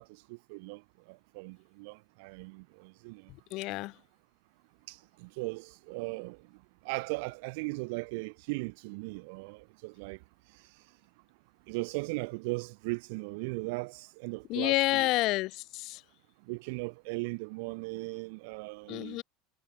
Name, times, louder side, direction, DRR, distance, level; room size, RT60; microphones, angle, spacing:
voice 1, 0.0-3.3 4.9-6.5 6.8-10.2 10.5-10.7 11.7-15.1 16.5-19.2, right 28 dB, 75° right, 2.5 m, -38 dB
voice 2, 3.5-3.9 14.5-16.0 18.9-19.2, left 20 dB, 60° left, 2.8 m, -29 dB
supercardioid pair, 115°, 0 cm